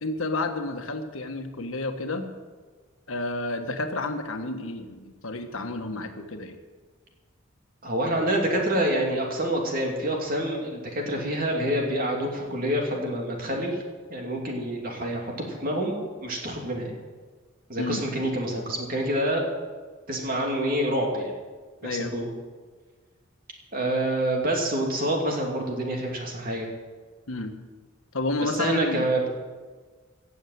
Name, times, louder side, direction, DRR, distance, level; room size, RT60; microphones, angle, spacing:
voice 1, 0.0-2.3 3.1-6.6 17.8-18.0 21.8-22.1 27.3-27.5 28.1-29.1, left 2 dB, 85° left, 6 dB, 1.4 m, -30 dB
voice 2, 7.8-13.8 14.1-17.0 17.7-19.5 20.1-21.3 21.8-22.3 23.7-26.7 28.4-29.3, right 1 dB, 45° right, 0 dB, 2.8 m, -27 dB
16.5 x 7.2 x 8.0 m, 1.4 s
head